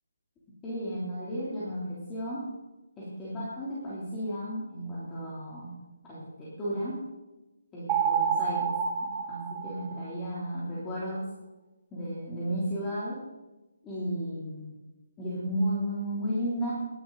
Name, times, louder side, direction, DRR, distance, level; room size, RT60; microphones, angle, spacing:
voice 1, 0.6-2.5 3.0-5.8 6.0-7.0 7.7-8.8 9.3-11.3 11.9-13.2 13.8-14.8 15.2-16.7, equal, 10° left, -9 dB, 3.2 m, -33 dB
sound 1, 7.9-10.3, right 7 dB, 15° right, 1.4 m, -29 dB
19.5 x 11.5 x 4.0 m, 1.1 s
hypercardioid pair, 165°, 0 cm